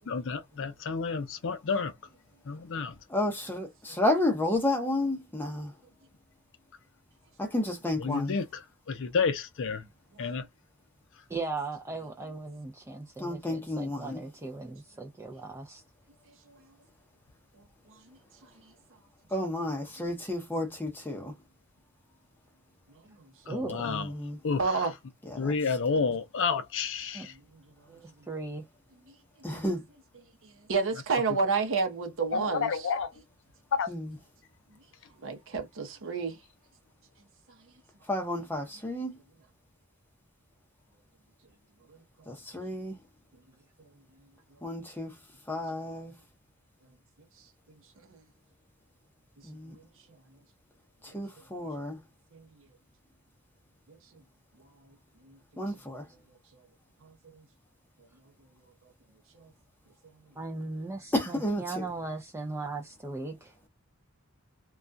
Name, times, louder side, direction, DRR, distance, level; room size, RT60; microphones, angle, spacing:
voice 1, 0.1-1.9 2.5-2.9 8.0-8.4 8.9-9.8 10.2-10.4 23.5-24.1 24.4-24.6 25.4-27.3 32.3-33.1 33.7-33.9, left 5 dB, 60° left, 0.5 m, -30 dB
voice 2, 3.1-5.7 7.4-8.4 13.2-14.2 19.3-21.3 23.8-24.4 25.3-25.8 29.4-29.9 33.9-34.2 38.1-39.2 42.3-43.0 44.6-45.1 45.5-46.1 49.4-49.8 51.0-52.0 55.6-56.1 61.1-61.9, left 1 dB, 10° left, 0.7 m, -31 dB
voice 3, 11.3-15.8 23.5-23.9 27.1-27.3 27.9-28.6 60.4-63.5, right 3 dB, 10° right, 0.4 m, -38 dB
voice 4, 24.6-24.9 30.7-32.9 35.2-36.4 48.1-48.2 49.8-49.9 52.3-52.4 57.0-57.4 59.4-59.5, right 4 dB, 60° right, 0.7 m, -30 dB
2.3 x 2.2 x 2.5 m
head